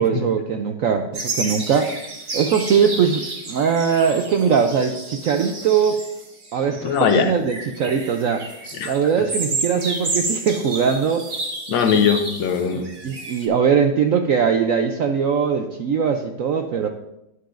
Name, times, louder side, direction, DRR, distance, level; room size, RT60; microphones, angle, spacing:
voice 1, 0.0-1.9 2.3-6.1 6.5-8.5 8.8-11.3 12.7-16.9, right 6 dB, 75° right, 5 dB, 0.7 m, -21 dB
sound 1, 1.1-13.5, right 3 dB, 35° right, 1.1 m, -31 dB
voice 2, 6.8-7.3 8.7-8.9 11.7-12.9, left 7 dB, 85° left, 7 dB, 1.6 m, -20 dB
11.0 x 9.3 x 2.5 m, 0.87 s
omnidirectional pair, 2.0 m